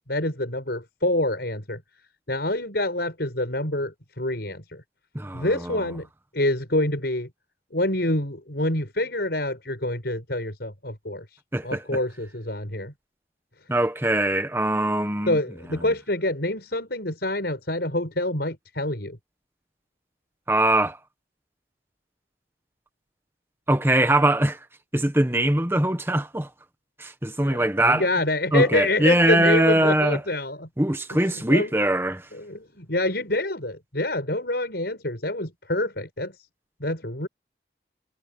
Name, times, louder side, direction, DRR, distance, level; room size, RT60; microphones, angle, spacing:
voice 1, 0.1-1.8 2.3-4.8 5.3-6.1 6.3-7.3 7.7-11.2 11.6-12.9 15.3-19.2 27.5-30.7 31.1-31.7 32.3-36.3 36.8-37.3, left 1 dB, 65° left, 6.0 m, -26 dB
voice 2, 5.1-5.9 11.5-12.0 13.7-15.4 15.7-15.9 20.5-21.0 23.7-24.6 24.9-26.5 27.0-28.1 28.5-30.2 30.8-32.3, right 1 dB, 15° right, 1.3 m, -22 dB
head